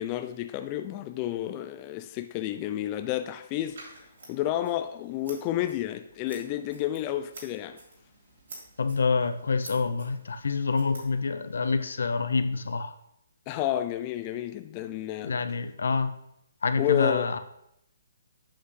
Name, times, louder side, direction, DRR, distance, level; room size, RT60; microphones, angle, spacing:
voice 1, 0.0-3.8 4.3-7.8 13.5-15.4 16.8-17.3, left 12 dB, 25° left, 0.3 m, -30 dB
Scissors, 3.6-11.6, right 2 dB, 70° right, 2.8 m, -50 dB
voice 2, 8.8-12.9 15.2-16.1 16.6-17.4, left 4 dB, 80° left, 0.6 m, -27 dB
8.0 x 6.1 x 3.2 m
hypercardioid pair, 155°, 0 cm